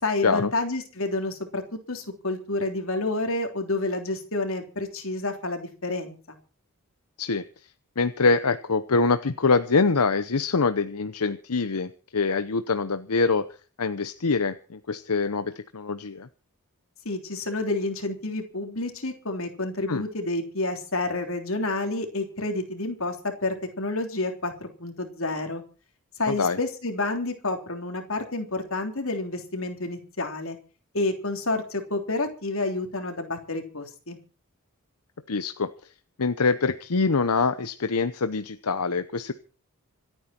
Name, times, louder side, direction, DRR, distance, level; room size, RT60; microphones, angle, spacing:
voice 1, 0.0-1.6 1.9-6.2 17.0-25.6 26.2-30.6 30.9-34.2, left 2 dB, 65° left, 5 dB, 3.4 m, -29 dB
voice 2, 8.0-13.5 13.8-16.3 19.9-20.0 26.3-26.6 35.3-35.7 36.2-39.3, left 4 dB, 85° left, 11 dB, 0.9 m, -24 dB
26.5 x 9.3 x 4.5 m, 0.38 s
head